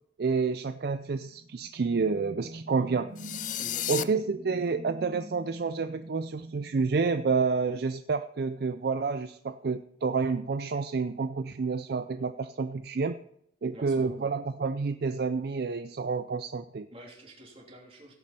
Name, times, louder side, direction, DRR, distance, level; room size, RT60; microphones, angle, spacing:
voice 1, 0.2-3.1 3.9-13.2 13.6-16.9, right 4 dB, 60° right, 10 dB, 0.4 m, -29 dB
sound 1, 1.3-7.6, right 2 dB, 85° right, 2.8 m, -45 dB
sound 2, 3.2-4.0, left 12 dB, 45° left, 0.5 m, -32 dB
voice 2, 3.6-4.1 13.7-14.3 16.9-18.1, right 1 dB, 35° right, -1 dB, 3.3 m, -48 dB
16.5 x 8.5 x 4.4 m, 0.73 s
head